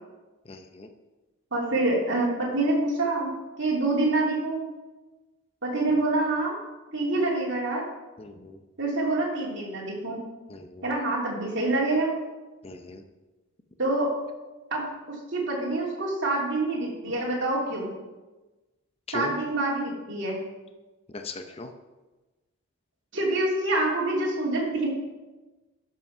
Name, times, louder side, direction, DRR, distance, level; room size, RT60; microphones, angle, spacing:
voice 1, 0.4-0.9 8.2-8.6 10.5-10.9 12.6-13.0 19.1-19.3 21.1-21.7, left 2 dB, 25° left, 6 dB, 0.6 m, -38 dB
voice 2, 1.5-4.6 5.6-6.6 6.9-7.8 8.8-10.2 10.8-12.1 13.8-14.1 14.7-17.9 19.1-20.4 23.1-24.9, right 2 dB, 55° right, -4 dB, 3.0 m, -26 dB
12.5 x 5.7 x 5.5 m, 1.2 s
head